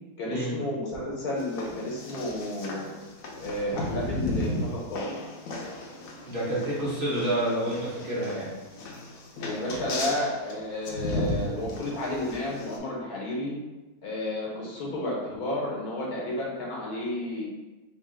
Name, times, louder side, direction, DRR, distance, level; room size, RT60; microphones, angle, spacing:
voice 1, 0.2-2.9 3.4-5.3 9.4-13.6 14.0-17.4, left 1 dB, 90° left, -4 dB, 1.6 m, -32 dB
sound 1, 1.4-12.8, left 1 dB, 70° left, 1.0 m, -35 dB
voice 2, 6.3-8.5, right 1 dB, 40° right, -8 dB, 1.3 m, -28 dB
3.6 x 2.5 x 3.8 m, 1.1 s
omnidirectional pair, 1.5 m